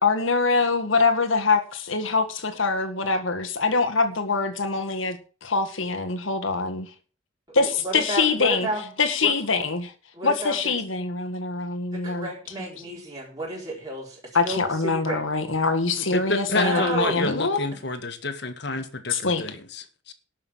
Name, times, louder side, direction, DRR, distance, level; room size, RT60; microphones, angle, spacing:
voice 1, 0.0-6.9 7.5-8.7 9.0-9.9 10.2-12.3 14.3-17.7 19.1-19.4, left 4 dB, 80° left, 1.9 m, -24 dB
voice 2, 7.5-8.9 9.2-9.3 10.1-10.6 11.9-15.2 16.5-17.2 17.7-17.8, right 1 dB, 20° right, 4.4 m, -31 dB
voice 3, 16.0-20.1, left 2 dB, 55° left, 1.7 m, -29 dB
12.0 x 6.7 x 7.5 m
head